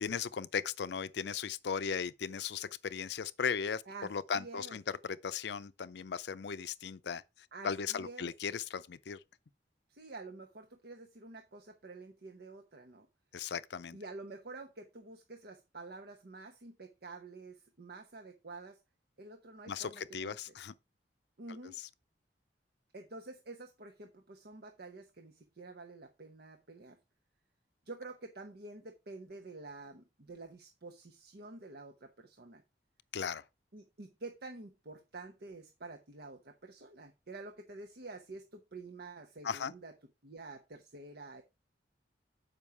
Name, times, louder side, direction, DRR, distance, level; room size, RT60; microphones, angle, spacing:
voice 1, 0.0-3.8 4.1-7.2 7.6-9.2 13.3-14.0 19.7-20.7 21.8-21.9 33.1-33.4 39.4-39.7, left 6 dB, 70° left, 0.5 m, -37 dB
voice 2, 3.9-4.8 7.5-8.3 9.9-13.1 13.9-18.8 19.2-20.4 21.4-21.8 22.9-27.0 27.9-32.6 33.7-39.9 40.2-41.4, right 3 dB, 65° right, 0.9 m, -49 dB
7.1 x 5.3 x 4.6 m
head